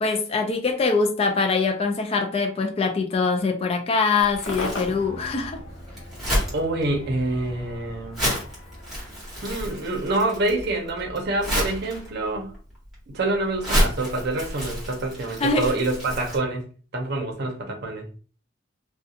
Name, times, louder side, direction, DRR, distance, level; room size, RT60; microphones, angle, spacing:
voice 1, 0.0-5.6 15.4-15.7, left 4 dB, 30° left, 0.3 m, -23 dB
Crumpling crinkling, 4.2-16.4, equal, ahead, 1.1 m, -30 dB
Cheering / Crowd / Fireworks, 4.5-9.7, left 2 dB, 85° left, 0.6 m, -38 dB
voice 2, 6.5-8.2 9.4-12.5 13.1-16.7 16.9-18.1, right 2 dB, 55° right, 0.7 m, -26 dB
2.4 x 2.2 x 2.7 m
head